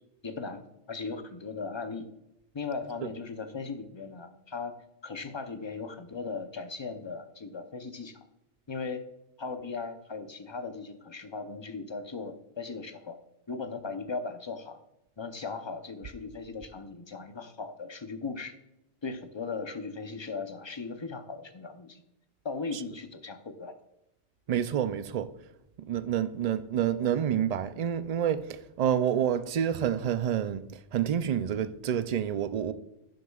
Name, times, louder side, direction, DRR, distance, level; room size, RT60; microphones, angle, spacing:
voice 1, 0.2-2.1 2.5-4.8 5.0-8.2 8.7-9.0 9.4-13.2 13.5-14.8 15.2-18.6 19.0-22.0 22.4-23.8, left 4 dB, 30° left, 0.7 m, -38 dB
voice 2, 24.5-25.3 25.8-32.7, right 9 dB, 50° right, 0.5 m, -28 dB
11.0 x 7.8 x 2.3 m
omnidirectional pair, 1.1 m